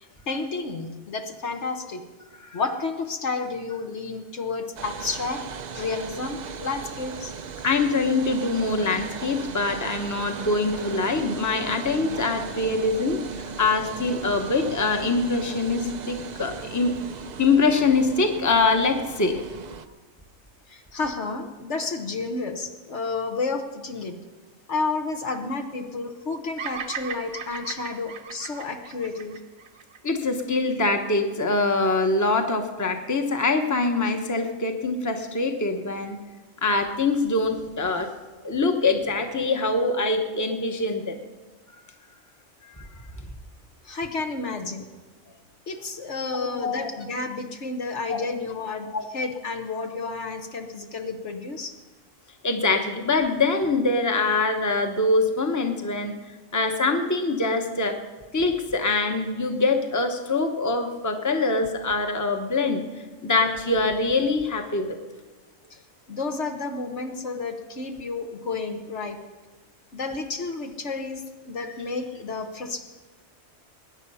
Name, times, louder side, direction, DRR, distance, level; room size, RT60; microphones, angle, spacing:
voice 1, 0.3-2.0 2.5-5.4 5.7-7.4 20.7-24.1 24.7-29.4 43.8-44.9 45.7-48.9 49.1-51.7 65.7-65.8 66.1-69.2 69.9-72.8, left 3 dB, 60° left, 5 dB, 1.4 m, -31 dB
sound 1, 4.8-19.9, right 6 dB, 50° right, 0.5 m, -37 dB
voice 2, 7.6-13.2 13.6-16.9 17.4-19.4 30.0-36.2 36.6-38.1 38.4-41.2 42.8-42.9 46.3-46.9 48.1-48.2 48.9-49.0 52.4-56.1 56.5-58.0 58.3-62.8 63.2-65.0, left 3 dB, 15° left, 5 dB, 1.1 m, -24 dB
Bird vocalization bird call bird song, 26.6-30.9, right 7 dB, 80° right, 1.5 m, -37 dB
21.0 x 9.8 x 5.6 m, 1.3 s
omnidirectional pair, 1.4 m